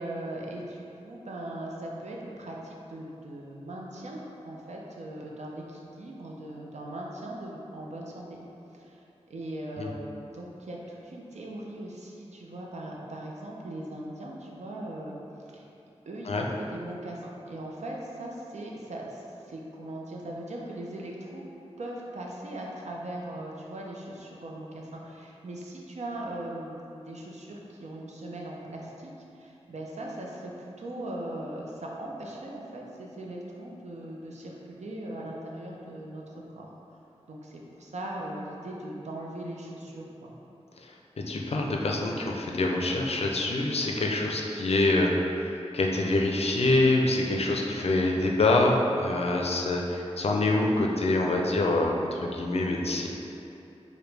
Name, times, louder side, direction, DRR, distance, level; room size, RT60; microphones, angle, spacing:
voice 1, 0.0-8.4 8.7-15.2 15.5-15.7 16.1-21.4 21.8-36.7 37.3-40.3, right 1 dB, 85° right, -2 dB, 0.5 m, -39 dB
voice 2, 41.3-45.1 45.4-53.1, left 2 dB, 65° left, 0 dB, 0.4 m, -25 dB
4.8 x 2.2 x 3.3 m, 2.9 s
wide cardioid pair, 90°, 11 cm